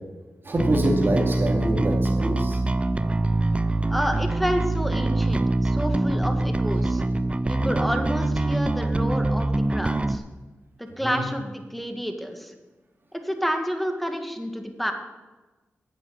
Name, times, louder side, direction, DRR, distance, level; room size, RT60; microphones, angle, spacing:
voice 1, 0.4-2.6 11.0-11.2, right 1 dB, 50° right, 0 dB, 2.6 m, -25 dB
Bass guitar, 0.6-10.2, right 2 dB, 25° right, 0.7 m, -24 dB
voice 2, 3.9-7.0 7.5-10.2 10.8-12.5 13.1-14.9, equal, ahead, 5 dB, 2.0 m, -29 dB
10.0 x 8.6 x 7.8 m, 1.2 s
cardioid pair, 50°, 5 cm